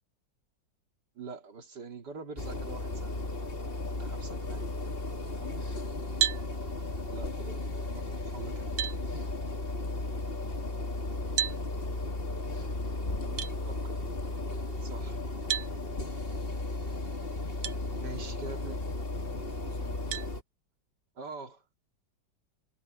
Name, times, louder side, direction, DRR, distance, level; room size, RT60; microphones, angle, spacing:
voice 1, 1.1-3.2 3.9-4.6 7.1-8.8 13.7-13.9 14.8-15.2 18.0-18.8 21.2-21.6, right 4 dB, 60° right, 3.3 m, -44 dB
sound 1, 2.4-20.4, left 2 dB, 30° left, 2.4 m, -35 dB
voice 2, 5.2-5.7 13.2-13.6 17.9-18.6 19.2-20.4, right 1 dB, 35° right, 7.6 m, -50 dB
sound 2, 6.2-6.5 8.1-8.2 8.8-9.0 11.4-11.6 13.4-13.5 15.5-15.7 17.6-17.8 18.4-18.5 20.1-20.3, right 10 dB, 90° right, 1.6 m, -30 dB
omnidirectional pair, 2.0 m